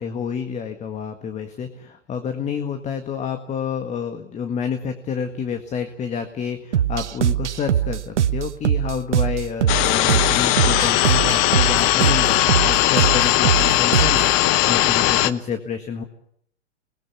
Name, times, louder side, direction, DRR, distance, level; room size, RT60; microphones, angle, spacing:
voice 1, 0.0-16.0, left 7 dB, 20° left, 8 dB, 1.7 m, -29 dB
sound 1, 6.7-14.3, right 10 dB, 75° right, 1.2 m, -22 dB
sound 2, 9.7-15.3, left 15 dB, 35° left, 1.1 m, -18 dB
26.0 x 20.5 x 8.3 m, 0.68 s
hypercardioid pair, 125°, 36 cm